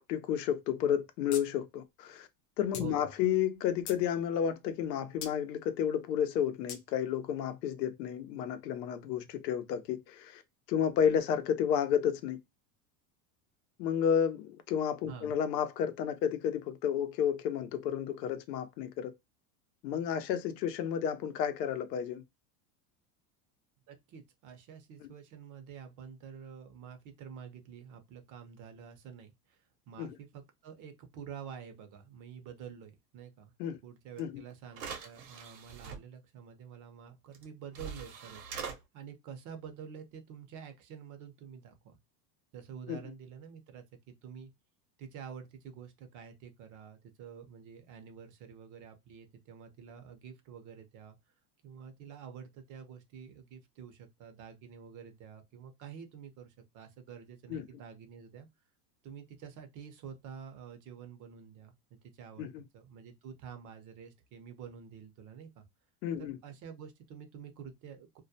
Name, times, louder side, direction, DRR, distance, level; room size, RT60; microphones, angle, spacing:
voice 1, 0.1-2.3 2.6-10.4 10.7-12.4 13.8-19.1 19.8-22.2 30.0-30.1 33.6-33.8 34.2-34.4 42.9-43.0 57.5-57.6 62.4-62.6 66.0-66.4, left 8 dB, 90° left, 0.7 m, -31 dB
sound 1, 1.3-1.4 1.7-1.8 2.7-2.9 3.5-4.0 5.2-5.4 6.7-6.8, left 8 dB, 40° left, 0.6 m, -42 dB
voice 2, 2.8-3.1 15.1-15.3 23.9-33.5 33.8-42.0 42.5-44.5 45.0-51.2 51.6-58.5 59.0-61.7 62.0-62.5 62.7-65.6 66.2-68.2, right 7 dB, 40° right, 0.6 m, -48 dB
sound 2, 34.2-34.3 34.7-36.0 37.3-37.4 37.7-38.8, right 6 dB, 80° right, 0.9 m, -42 dB
2.3 x 2.1 x 2.6 m
supercardioid pair, 125°, 48 cm